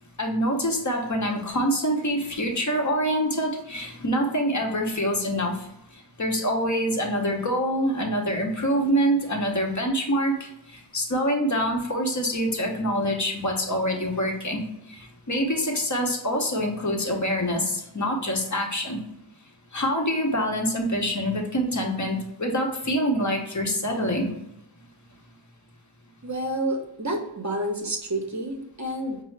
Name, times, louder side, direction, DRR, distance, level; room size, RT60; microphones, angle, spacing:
voice 1, 0.2-5.7 6.2-14.6 14.9-19.0 19.7-24.3, equal, 40° left, 2 dB, 0.8 m, -25 dB
voice 2, 26.2-29.2, right 1 dB, 40° right, 3 dB, 0.7 m, -29 dB
5.3 x 2.0 x 3.2 m, 0.82 s
wide cardioid pair, 45°, 46 cm